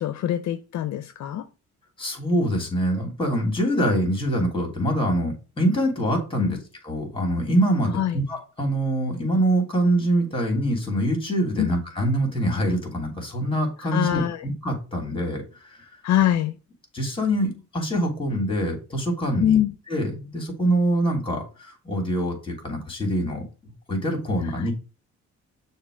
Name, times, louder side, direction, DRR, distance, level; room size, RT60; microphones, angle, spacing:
voice 1, 0.0-1.4 6.4-6.6 7.9-8.2 11.6-11.7 13.9-14.4 16.0-16.6 19.4-19.7, left 11 dB, 65° left, 0.6 m, -23 dB
voice 2, 2.0-6.6 6.8-15.4 16.9-19.6 19.9-23.4 23.9-24.7, right 1 dB, 15° left, 2.9 m, -24 dB
6.5 x 2.9 x 4.9 m
cardioid pair, 90°, 30 cm